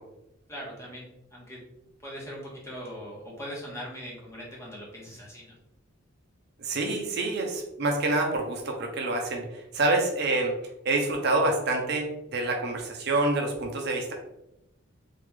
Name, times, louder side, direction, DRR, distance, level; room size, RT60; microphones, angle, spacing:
voice 1, 0.5-1.6 2.0-5.6, equal, 15° left, -4 dB, 1.2 m, -40 dB
voice 2, 6.6-10.5 10.8-14.1, right 2 dB, 50° right, 2 dB, 0.7 m, -27 dB
3.7 x 3.6 x 3.3 m, 0.87 s
head